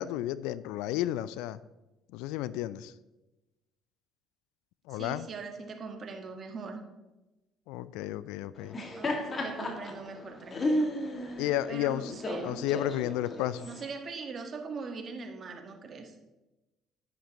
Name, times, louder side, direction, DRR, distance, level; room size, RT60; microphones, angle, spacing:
voice 1, 0.0-1.6 2.1-2.9 4.9-5.3 7.7-8.8 11.4-12.2 12.4-13.7, left 13 dB, 75° left, 17 dB, 0.3 m, -32 dB
voice 2, 4.9-6.8 9.0-10.9 11.7-12.7 13.6-16.1, right 4 dB, 45° right, 5 dB, 1.5 m, -41 dB
Laughter, 8.6-13.8, left 1 dB, 35° left, 2.0 m, -34 dB
10.5 x 9.9 x 3.0 m, 1.0 s
hypercardioid pair, 60°, 0 cm